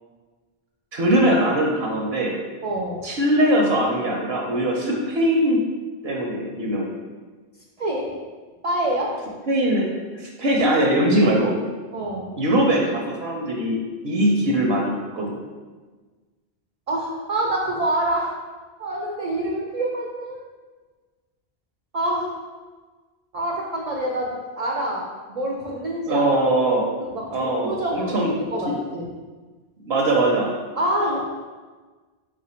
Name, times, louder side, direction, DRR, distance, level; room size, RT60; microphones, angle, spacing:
voice 1, 0.9-2.3 3.0-5.6 6.0-6.9 9.5-9.9 10.1-11.6 12.4-15.4 26.1-26.9 27.3-28.3 28.7-28.8 29.8-30.5, right 1 dB, 70° right, -1 dB, 0.9 m, -21 dB
voice 2, 2.6-3.0 7.8-8.2 8.6-9.2 11.9-12.3 16.9-18.3 18.8-20.4 21.9-22.3 23.3-26.5 27.0-29.1 30.8-31.2, right 1 dB, 50° right, -1 dB, 0.5 m, -26 dB
4.3 x 2.5 x 4.2 m, 1.4 s
omnidirectional pair, 1.1 m